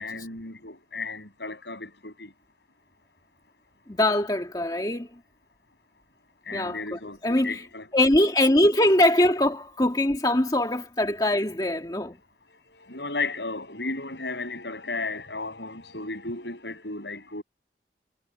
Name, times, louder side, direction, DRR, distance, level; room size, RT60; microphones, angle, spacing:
voice 1, 0.0-2.3 6.5-7.9 12.5-17.4, left 3 dB, 75° left, 7.4 m, -34 dB
voice 2, 3.9-5.1 6.5-7.7 7.9-12.2, left 1 dB, 20° left, 2.0 m, -22 dB
head